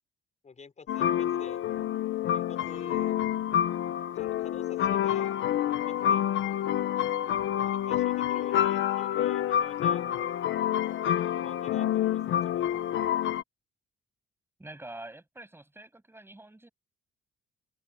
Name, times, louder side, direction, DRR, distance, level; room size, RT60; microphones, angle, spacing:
voice 1, 0.4-1.7 2.3-3.2 4.1-6.3 7.4-10.0 11.0-12.8, left 5 dB, 35° left, 5.6 m, -48 dB
sound 1, 0.9-13.4, left 10 dB, 80° left, 1.5 m, -28 dB
voice 2, 14.6-16.7, right 1 dB, 10° right, 7.4 m, -46 dB
open air
cardioid pair, 90°, 20 cm